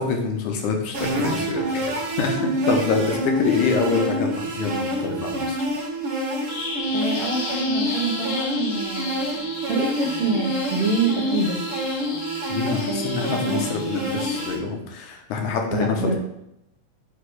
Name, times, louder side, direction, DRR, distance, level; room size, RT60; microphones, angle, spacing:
voice 1, 0.0-5.6 12.5-16.1, left 5 dB, 70° left, 2 dB, 2.2 m, -26 dB
sound 1, 0.9-14.6, right 1 dB, 45° right, 2.0 m, -27 dB
Bird vocalization bird call bird song, 6.5-14.5, left 4 dB, 85° left, 2.9 m, -34 dB
voice 2, 6.9-11.6 12.9-13.6 15.7-16.1, right 3 dB, 80° right, -3 dB, 1.3 m, -26 dB
8.3 x 3.0 x 6.0 m, 0.82 s
omnidirectional pair, 4.0 m